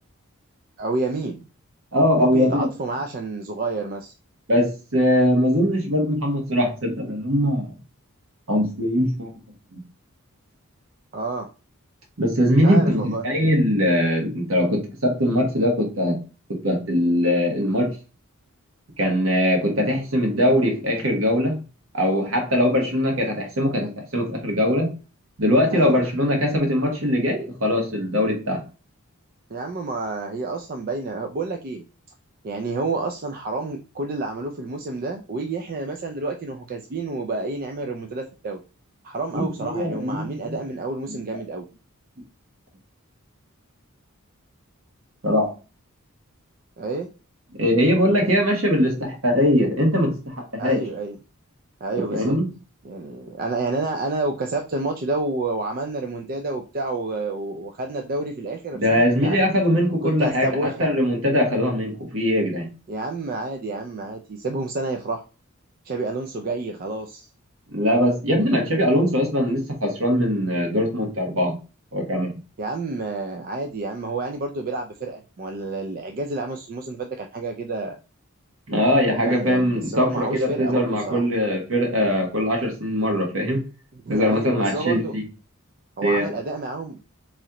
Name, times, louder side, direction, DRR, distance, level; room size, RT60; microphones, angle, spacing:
voice 1, 0.8-1.4 2.2-4.1 11.1-11.5 12.6-13.2 25.7-26.0 29.5-31.8 32.4-38.6 39.0-41.6 46.8-47.1 50.6-51.2 51.8-52.4 52.8-59.4 60.0-60.9 62.9-65.2 65.8-67.3 72.6-78.0 79.2-81.3 84.1-85.2 86.0-87.0, right 3 dB, 40° right, 0.4 m, -29 dB
voice 2, 1.9-2.7 4.5-7.7 8.5-9.3 9.7-9.8 12.2-16.2 16.5-17.9 19.0-21.6 21.9-24.9 25.4-28.6 39.3-40.6 41.1-41.2 45.2-45.5 47.6-50.8 52.1-52.5 58.7-62.7 67.7-71.6 71.9-72.3 78.7-83.6 84.1-85.2 86.0-86.3, equal, 65° right, 1.3 m, -21 dB
3.7 x 3.1 x 2.9 m
head